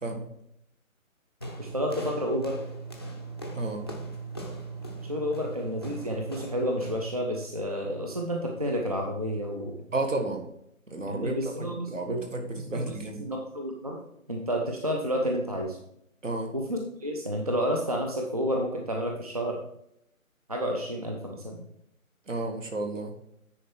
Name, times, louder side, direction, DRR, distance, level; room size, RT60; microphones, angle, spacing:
sound 1, 1.4-7.2, right 3 dB, 20° left, 0.6 m, -39 dB
voice 1, 1.6-2.6 5.0-9.7 11.1-12.3 12.5-14.0 14.3-15.8 16.5-19.6 20.5-21.6, equal, 25° right, 1 dB, 0.6 m, -30 dB
voice 2, 9.9-10.4 10.9-13.2 16.2-16.5 22.3-23.1, right 2 dB, 60° right, 4 dB, 1.7 m, -32 dB
9.8 x 4.5 x 4.5 m, 0.75 s
figure-of-eight pair, 150°, 42 cm